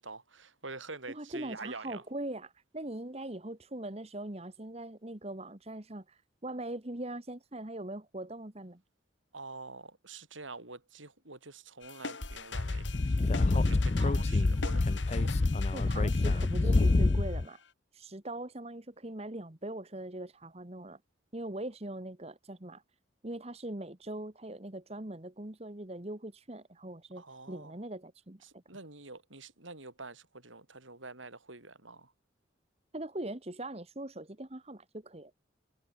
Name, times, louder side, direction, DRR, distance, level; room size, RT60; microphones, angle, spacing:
voice 1, 0.0-2.0 9.3-15.4 27.2-27.8 28.4-32.1, right 3 dB, 85° right, 6.4 m, -47 dB
voice 2, 1.1-8.8 15.7-17.6 17.9-21.0 21.3-22.8 23.2-28.6 32.9-35.3, right 1 dB, 30° right, 1.5 m, -41 dB
sound 1, 11.8-17.7, left 3 dB, 75° left, 2.6 m, -43 dB
Speech / Wind, 12.5-17.4, left 2 dB, 35° left, 0.4 m, -27 dB
head